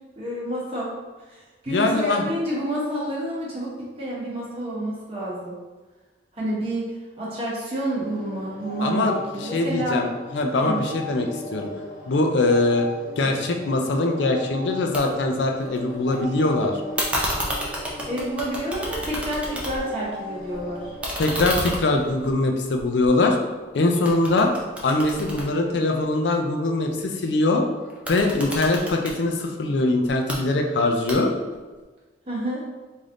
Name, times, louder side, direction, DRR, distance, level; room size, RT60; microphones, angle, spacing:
voice 1, 0.2-1.0 1.3-5.6 6.3-10.0 10.6-10.8 18.1-20.8 32.3-32.6, right 1 dB, 30° right, -6 dB, 1.1 m, -29 dB
voice 2, 1.7-2.3 8.8-11.7 12.1-12.9 13.2-16.8 21.2-23.4 23.7-24.5 24.8-27.6 28.1-31.3, left 2 dB, 70° left, 3 dB, 0.4 m, -22 dB
sound 1, 8.0-21.0, left 1 dB, 50° left, 0.8 m, -37 dB
sound 2, 14.9-15.0 15.3-16.2 17.0-20.0 20.4-23.6 24.0-26.3 27.9-29.2 30.0-30.4 31.1-31.5, equal, 5° right, 0.5 m, -31 dB
3.4 x 2.6 x 3.6 m, 1.3 s
head